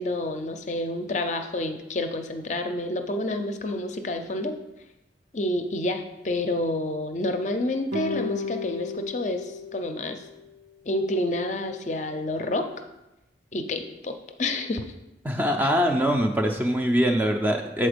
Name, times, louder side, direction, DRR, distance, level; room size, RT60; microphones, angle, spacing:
voice 1, 0.0-4.5 5.3-10.2 10.8-12.7 13.5-14.9 15.6-15.7, left 1 dB, 40° left, 6 dB, 0.5 m, -29 dB
sound 1, 7.9-10.5, left 4 dB, 70° right, 0.6 m, -34 dB
voice 2, 15.2-17.9, equal, 10° right, 3 dB, 0.4 m, -23 dB
7.0 x 4.3 x 5.0 m, 0.94 s
head